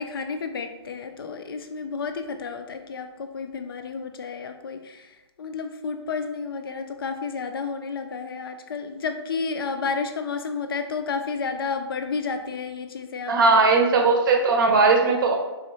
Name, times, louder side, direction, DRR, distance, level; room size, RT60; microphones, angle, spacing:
voice 1, 0.0-13.7, left 5 dB, 55° left, 7 dB, 0.4 m, -31 dB
voice 2, 13.3-15.3, right 3 dB, 50° right, 3 dB, 0.7 m, -18 dB
3.8 x 3.0 x 3.1 m, 1.1 s
figure-of-eight pair, 140°, 15 cm